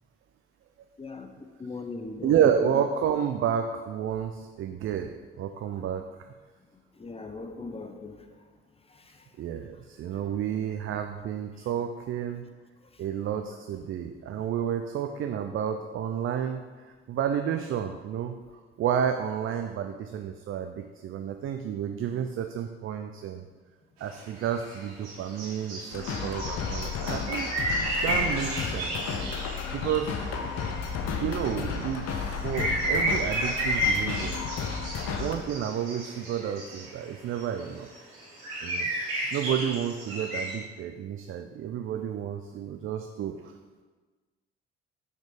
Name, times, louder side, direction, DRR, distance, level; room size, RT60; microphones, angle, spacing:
voice 1, 1.6-2.4 7.0-8.2, left 3 dB, 20° left, 6 dB, 0.7 m, -38 dB
voice 2, 2.2-6.0 9.4-12.4 13.0-18.3 18.8-23.5 24.0-27.5 28.0-29.2 29.7-30.2 31.2-34.4 35.2-37.9 38.6-38.9 39.3-43.5, right 8 dB, 45° right, 6 dB, 0.4 m, -30 dB
sound 1, 24.1-24.2 24.4-30.2 30.5-37.1 37.3-40.6, right 1 dB, 70° right, 1.8 m, -32 dB
sound 2, 25.9-35.3, left 5 dB, 60° left, 0.8 m, -33 dB
6.4 x 3.4 x 5.0 m, 1.4 s
hypercardioid pair, 50°, 30 cm